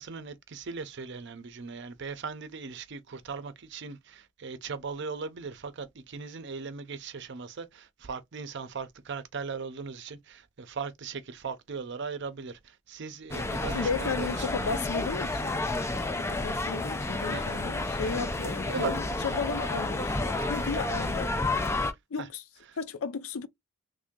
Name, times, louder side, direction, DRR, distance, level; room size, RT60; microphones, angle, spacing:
voice 1, 0.0-14.5 17.3-17.5 18.4-19.0 22.2-22.3 22.7-22.8, right 5 dB, 55° right, 0.6 m, -38 dB
sound 1, 13.3-21.9, left 2 dB, 15° left, 0.3 m, -31 dB
voice 2, 13.7-15.6 16.2-21.3 22.1-22.4 22.8-23.5, left 5 dB, 80° left, 0.5 m, -34 dB
3.2 x 2.6 x 3.6 m
head